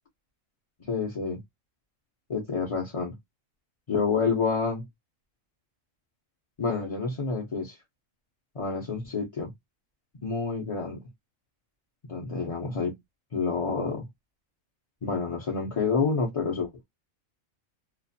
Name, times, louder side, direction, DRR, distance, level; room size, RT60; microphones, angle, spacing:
voice 1, 0.9-1.4 2.3-3.1 3.9-4.8 6.6-7.8 8.5-9.5 10.2-11.0 12.1-13.0 13.3-14.0 15.0-16.8, left 5 dB, 35° left, 0.5 m, -28 dB
2.5 x 2.4 x 2.6 m
omnidirectional pair, 1.4 m